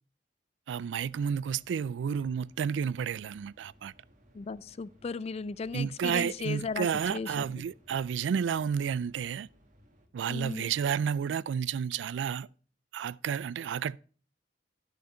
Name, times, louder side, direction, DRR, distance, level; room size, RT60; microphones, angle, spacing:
voice 1, 0.7-3.9 5.7-9.5 10.1-12.5 12.9-14.0, right 7 dB, 75° right, 0.3 m, -31 dB
sound 1, 1.0-10.1, equal, 45° right, 1.8 m, -62 dB
voice 2, 4.3-7.5 10.3-10.7, left 4 dB, 35° left, 0.4 m, -36 dB
11.0 x 6.5 x 4.3 m
head